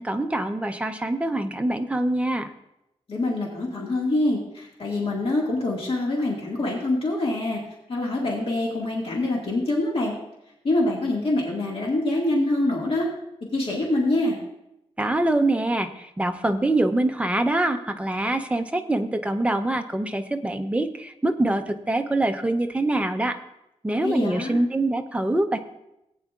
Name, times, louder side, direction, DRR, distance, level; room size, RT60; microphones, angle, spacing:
voice 1, 0.0-2.5 15.0-23.4 23.8-25.6, right 1 dB, 10° right, 6 dB, 0.6 m, -24 dB
voice 2, 3.1-7.6 7.9-10.1 10.6-13.1 13.5-14.4 24.0-24.6, left 2 dB, 55° left, -3 dB, 1.8 m, -25 dB
18.5 x 9.2 x 2.4 m, 0.86 s
wide cardioid pair, 165°, 12 cm